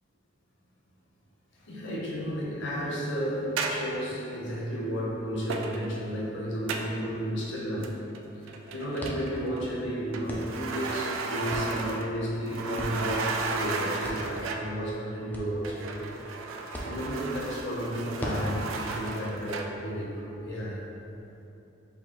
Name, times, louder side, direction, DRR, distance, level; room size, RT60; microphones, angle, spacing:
voice 1, 1.6-8.0 8.7-16.2 16.8-20.8, equal, 65° left, -4 dB, 0.8 m, -32 dB
sound 1, 3.6-4.0 5.5-6.0 6.7-7.0 7.8-8.2 8.5-9.6 10.1-12.2 12.5-14.8 15.6-19.8, right 4 dB, 80° right, 0.3 m, -34 dB
sound 2, 9.0-20.5, equal, 10° left, 0.4 m, -43 dB
4.5 x 2.6 x 3.0 m, 2.9 s
head